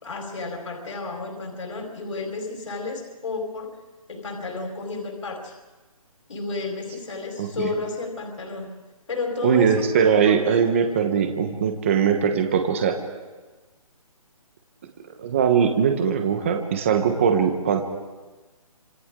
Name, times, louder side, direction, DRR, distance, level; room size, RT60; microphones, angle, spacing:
voice 1, 0.0-3.8 4.1-5.5 6.3-8.7 9.1-10.5 10.8-10.9, left 3 dB, 55° left, 2 dB, 4.5 m, -32 dB
voice 2, 7.4-7.7 9.4-13.0 15.2-17.8, right 7 dB, 20° right, 6 dB, 1.2 m, -21 dB
29.0 x 26.5 x 3.8 m, 1.2 s
hypercardioid pair, 175°, 19 cm